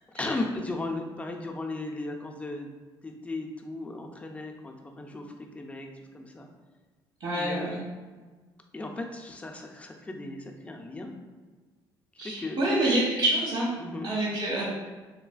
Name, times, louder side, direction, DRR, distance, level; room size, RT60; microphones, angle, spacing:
voice 1, 0.1-2.7 3.0-6.5 7.4-7.8 8.7-11.1 12.2-12.6 13.8-14.1, left 2 dB, 15° left, 2 dB, 0.4 m, -36 dB
voice 2, 7.2-7.8 12.2-13.7 14.0-14.7, right 1 dB, 70° right, -5 dB, 0.9 m, -27 dB
3.2 x 2.3 x 2.3 m, 1.4 s
cardioid pair, 105°, 9 cm